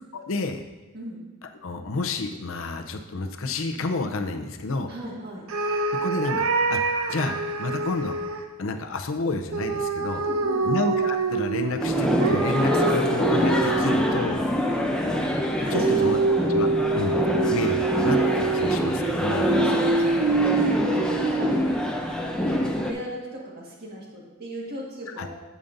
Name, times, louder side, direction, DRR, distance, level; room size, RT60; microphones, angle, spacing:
voice 1, 0.1-0.6 1.6-4.9 6.0-6.8 7.1-8.2 8.6-10.2 10.6-14.4 15.7-16.7 16.9-17.2 17.4-19.5 25.2-25.3, left 3 dB, 70° left, 6 dB, 0.6 m, -30 dB
voice 2, 0.9-1.3 4.9-5.5 10.1-10.7 14.5-15.0 15.6-16.3 19.6-22.0 22.3-25.3, equal, 45° right, -3 dB, 1.8 m, -37 dB
sound 1, 5.5-8.5 9.5-14.3 15.7-21.8, right 3 dB, 85° right, 0.7 m, -26 dB
sound 2, 11.8-22.9, left 1 dB, 5° left, 0.6 m, -25 dB
8.8 x 8.3 x 2.6 m, 1.2 s
head